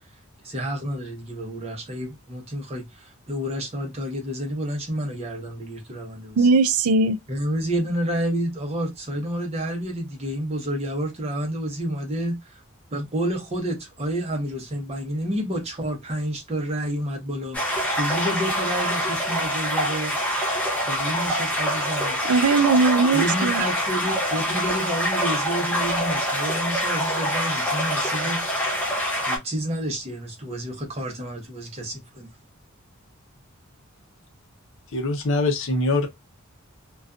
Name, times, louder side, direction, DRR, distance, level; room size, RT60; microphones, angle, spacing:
voice 1, 0.4-6.5 7.3-12.6 12.9-20.2 20.8-22.2 23.1-28.7 29.2-32.3, right 1 dB, 30° right, 0.7 m, -29 dB
voice 2, 6.4-7.2 22.3-23.6, right 4 dB, 80° right, 0.4 m, -19 dB
sound 1, 17.5-29.4, equal, 5° left, 0.6 m, -25 dB
voice 3, 34.9-36.1, left 2 dB, 60° left, 0.6 m, -23 dB
2.5 x 2.3 x 2.3 m
head